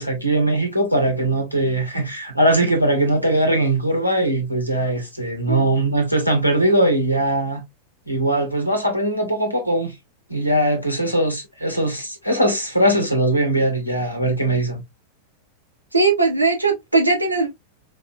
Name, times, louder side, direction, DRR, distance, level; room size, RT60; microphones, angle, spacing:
voice 1, 0.0-7.6 8.1-9.9 10.3-14.8, right 1 dB, 90° left, 1.2 m, -20 dB
voice 2, 15.9-17.5, right 3 dB, 85° right, 1.0 m, -19 dB
4.6 x 2.6 x 2.4 m
figure-of-eight pair, 90°, 0 cm